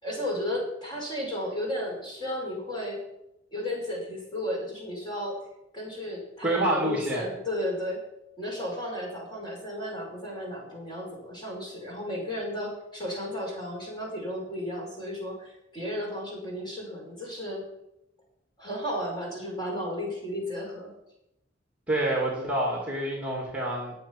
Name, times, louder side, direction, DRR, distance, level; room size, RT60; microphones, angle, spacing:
voice 1, 0.0-3.0 3.5-5.4 5.7-8.0 8.4-17.6 18.6-20.9, equal, 25° left, -2 dB, 5.5 m, -33 dB
voice 2, 6.4-7.3 21.9-23.9, right 1 dB, 10° right, -2 dB, 2.5 m, -27 dB
19.0 x 7.3 x 5.9 m, 0.87 s
head